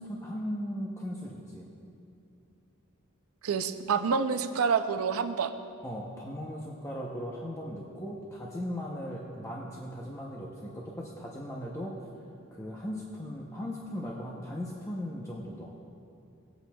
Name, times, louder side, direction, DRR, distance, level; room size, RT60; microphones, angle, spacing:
voice 1, 0.0-1.7 5.8-12.0 12.5-15.7, equal, 15° left, -3 dB, 0.7 m, -38 dB
voice 2, 3.4-5.5, right 6 dB, 85° right, 9 dB, 0.5 m, -27 dB
18.0 x 8.6 x 2.3 m, 2.5 s
head